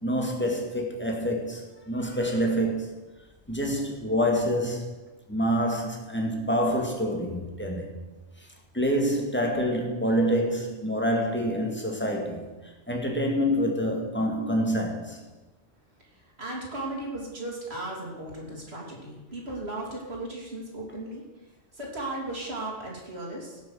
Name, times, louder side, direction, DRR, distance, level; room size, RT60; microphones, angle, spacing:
voice 1, 0.0-3.0 3.5-4.9 5.3-7.9 8.7-12.5 12.9-15.2, equal, 10° left, 1.9 m, -27 dB
voice 2, 16.0-21.2 21.7-23.6, right 2 dB, 65° right, 3.2 m, -36 dB
17.0 x 6.3 x 6.3 m
omnidirectional pair, 1.1 m